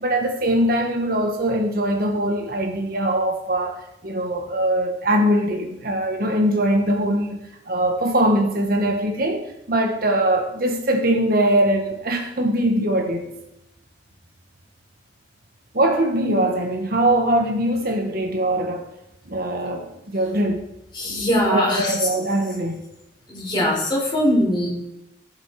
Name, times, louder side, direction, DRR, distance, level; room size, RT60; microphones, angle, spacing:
voice 1, 0.0-7.4 7.7-13.3 15.7-18.9 19.3-20.6 21.5-22.8, right 1 dB, 55° right, 3 dB, 1.4 m, -22 dB
voice 2, 20.9-21.9 23.3-24.7, left 1 dB, 25° left, -4 dB, 4.6 m, -21 dB
15.5 x 7.4 x 4.9 m, 0.86 s
head